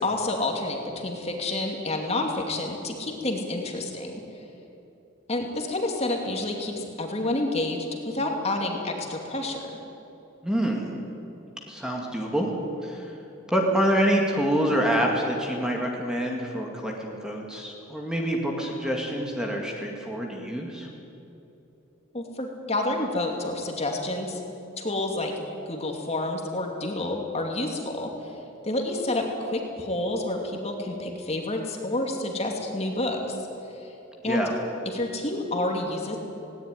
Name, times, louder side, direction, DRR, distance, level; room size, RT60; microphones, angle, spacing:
voice 1, 0.0-4.1 5.3-9.6 22.1-24.4 24.8-25.3 25.7-28.1 28.6-33.2 34.2-34.4 34.9-36.2, left 2 dB, 30° left, 2 dB, 2.7 m, -29 dB
voice 2, 10.4-10.9 11.7-12.5 12.8-13.2 13.5-20.9 34.2-34.5, equal, 5° right, 0 dB, 2.3 m, -26 dB
18.5 x 18.0 x 9.6 m, 3.0 s
head